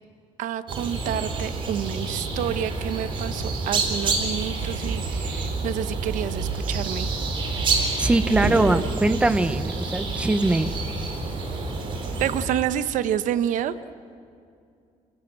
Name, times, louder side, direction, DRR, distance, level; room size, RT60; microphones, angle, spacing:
voice 1, 0.4-7.1 12.2-13.7, right 10 dB, 70° right, 12 dB, 1.0 m, -28 dB
sound 1, 0.7-12.4, right 3 dB, 40° right, 4.4 m, -28 dB
voice 2, 8.0-10.7, right 2 dB, 10° right, 10 dB, 0.8 m, -22 dB
30.0 x 21.0 x 7.5 m, 2.4 s
cardioid pair, 170°, 13 cm